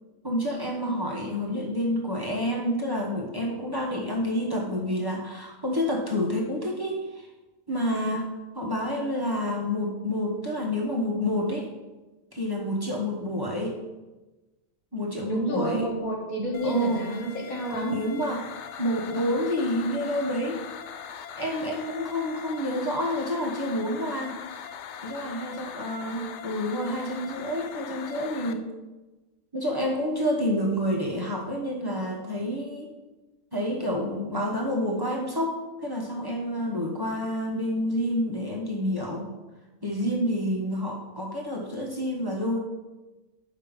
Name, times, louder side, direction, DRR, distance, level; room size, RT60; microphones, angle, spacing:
voice 1, 0.2-7.3 7.7-11.7 12.3-13.8 14.9-15.9 16.6-17.0 17.8-18.5 18.8-20.6 21.4-24.4 25.0-28.7 29.5-32.9 33.5-39.3 39.8-42.6, left 1 dB, 15° right, -2 dB, 1.2 m, -28 dB
voice 2, 15.3-18.0, right 1 dB, 85° left, -1 dB, 2.3 m, -29 dB
sound 1, 16.5-28.5, left 7 dB, 65° left, 0.9 m, -41 dB
7.8 x 5.7 x 5.3 m, 1.1 s
omnidirectional pair, 1.4 m